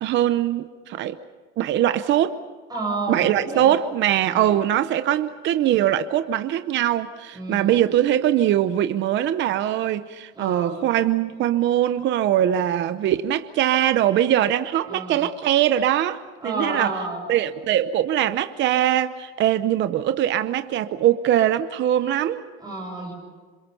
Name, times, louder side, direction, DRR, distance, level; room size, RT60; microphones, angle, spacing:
voice 1, 0.0-1.2 1.6-2.4 3.1-16.9 17.3-22.4, right 11 dB, 40° right, 0.8 m, -22 dB
voice 2, 2.7-3.7 4.3-4.6 7.3-7.8 10.3-10.8 14.9-15.3 16.4-17.2 22.6-23.1, right 2 dB, 15° right, 7.5 m, -30 dB
27.0 x 27.0 x 5.6 m
cardioid pair, 160°, 30 cm